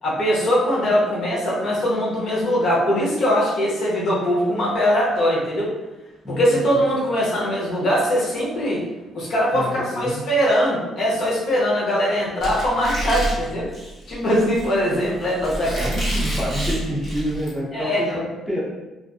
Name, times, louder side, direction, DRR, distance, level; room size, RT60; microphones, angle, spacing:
voice 1, 0.0-5.7 6.3-8.8 9.1-13.7 14.1-15.9 17.7-18.1, equal, 50° left, -4 dB, 0.8 m, -21 dB
voice 2, 6.2-6.7 9.5-10.2 15.6-18.6, equal, ahead, -6 dB, 0.4 m, -28 dB
Squeak, 12.4-17.5, right 1 dB, 25° left, 1.0 m, -28 dB
2.4 x 2.4 x 2.3 m, 1.1 s
cardioid pair, 155°, 0 cm